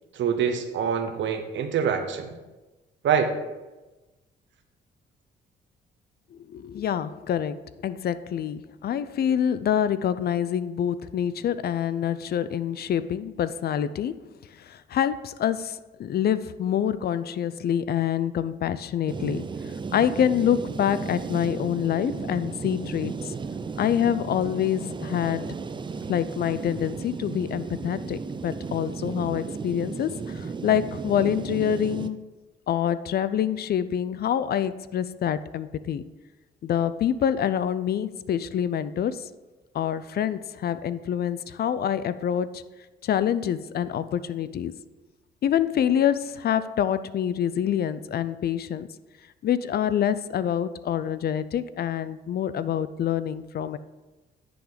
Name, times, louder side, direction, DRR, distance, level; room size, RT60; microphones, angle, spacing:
voice 1, 0.1-2.3 3.0-3.3, right 7 dB, 70° right, 7 dB, 0.9 m, -25 dB
voice 2, 6.5-14.2 14.6-19.5 19.9-23.3 23.8-25.4 26.1-32.3 32.7-36.0 36.6-39.3 39.7-42.6 43.0-44.7 45.4-48.9 49.4-53.8, left 9 dB, 55° left, 15 dB, 0.4 m, -26 dB
sound 1, 19.1-32.1, right 5 dB, 25° right, 0.4 m, -34 dB
9.8 x 3.9 x 5.0 m, 1.1 s
cardioid pair, 90°, 20 cm